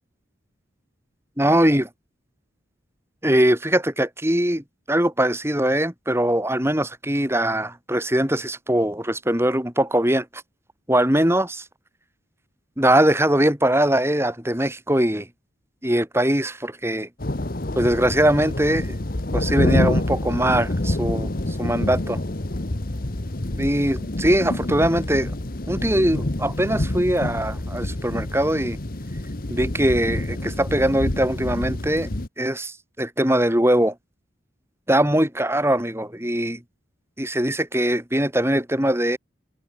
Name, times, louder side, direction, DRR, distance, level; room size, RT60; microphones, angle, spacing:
voice 1, 1.4-1.8 3.2-10.3 10.9-11.6 12.8-15.3 15.8-17.1 17.7-19.0 19.3-22.2 23.6-25.3 25.7-28.8 29.5-32.1 32.4-33.9 34.9-36.6 37.2-39.2, right 1 dB, 15° right, 4.8 m, -21 dB
sound 1, 17.2-32.3, left 1 dB, 50° left, 1.4 m, -27 dB
head